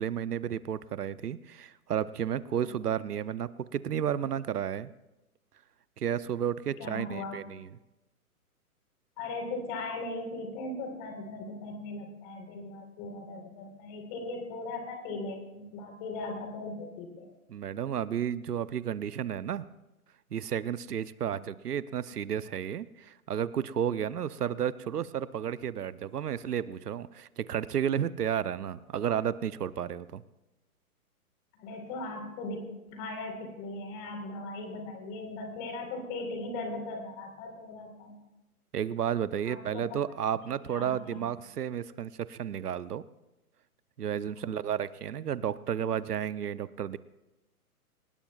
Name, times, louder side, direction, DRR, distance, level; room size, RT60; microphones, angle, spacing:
voice 1, 0.0-4.9 6.0-7.7 17.5-19.7 20.3-30.2 38.7-43.0 44.0-47.0, right 9 dB, 85° right, 16 dB, 0.8 m, -32 dB
voice 2, 6.8-7.4 9.2-17.3 31.6-32.6 32.9-38.2 39.4-39.9 40.7-41.2 44.3-44.6, left 2 dB, 30° left, 3 dB, 4.1 m, -38 dB
23.0 x 19.5 x 2.4 m, 0.98 s
hypercardioid pair, 145°, 45 cm